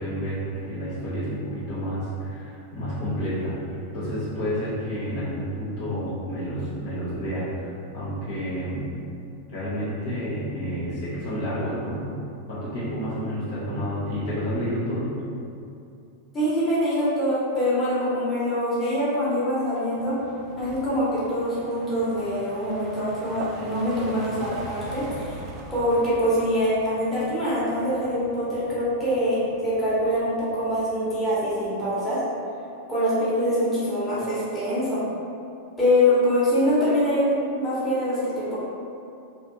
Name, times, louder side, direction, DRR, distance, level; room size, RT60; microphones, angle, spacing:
voice 1, 0.0-3.5 3.9-8.9 9.5-12.1 12.4-15.1, equal, 50° left, -11 dB, 0.9 m, -30 dB
voice 2, 16.3-20.2 20.6-25.4 25.7-32.2 32.9-35.0 35.8-38.6, equal, 15° left, -11 dB, 1.3 m, -24 dB
sound 1, 19.9-31.7, right 2 dB, 35° right, 0.4 m, -42 dB
3.3 x 2.7 x 2.8 m, 2.6 s
figure-of-eight pair, 90°, 0 cm